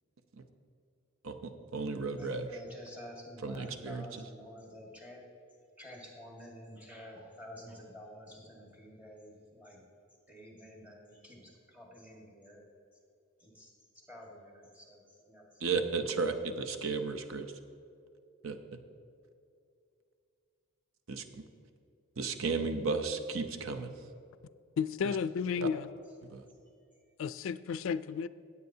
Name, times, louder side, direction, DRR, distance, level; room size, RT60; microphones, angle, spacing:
voice 1, 1.2-2.5 3.4-4.0 15.6-17.5 18.4-18.6 21.1-21.4 22.2-23.9 26.3-26.4, right 4 dB, 75° right, 8 dB, 0.7 m, -34 dB
voice 2, 2.2-5.2 5.8-9.8 10.3-12.6 13.4-13.7 14.1-15.6 26.9-27.0, equal, 10° right, -2 dB, 1.6 m, -50 dB
voice 3, 24.8-25.9 27.2-28.3, left 6 dB, 70° left, 16 dB, 0.3 m, -32 dB
16.0 x 8.4 x 2.7 m, 2.5 s
head